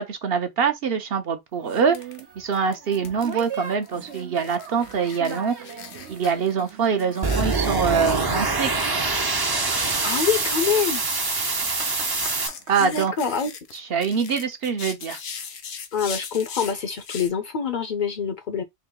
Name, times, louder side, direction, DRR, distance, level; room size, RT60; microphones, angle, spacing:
voice 1, 0.0-2.0 2.4-5.5 6.1-8.9 12.7-13.1 13.7-15.2, right 6 dB, 65° right, 1.0 m, -24 dB
sound 1, 1.7-13.3, right 6 dB, 80° right, 1.2 m, -40 dB
sound 2, 1.9-2.2 2.5-17.3, left 6 dB, 80° left, 1.0 m, -40 dB
sound 3, 7.2-12.5, right 3 dB, 30° right, 0.5 m, -24 dB
voice 2, 10.0-11.0 12.8-13.5 15.9-18.6, left 6 dB, 55° left, 0.6 m, -25 dB
3.9 x 2.7 x 3.7 m
omnidirectional pair, 1.1 m